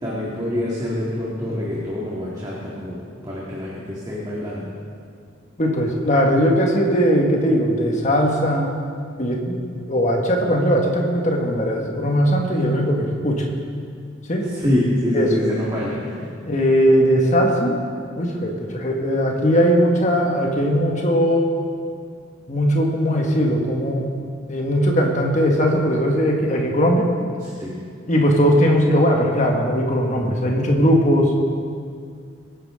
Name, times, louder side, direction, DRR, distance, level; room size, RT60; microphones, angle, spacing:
voice 1, 0.0-4.8 14.4-16.3 27.4-27.8, left 1 dB, 20° right, -6 dB, 1.9 m, -26 dB
voice 2, 5.6-8.7 9.2-9.6 9.9-13.4 14.3-14.4 15.1-15.3 16.5-17.8 18.2-21.5 22.5-24.1 24.5-27.1 28.1-31.3, equal, 35° left, 0 dB, 1.7 m, -19 dB
23.5 x 9.9 x 3.8 m, 2.3 s
head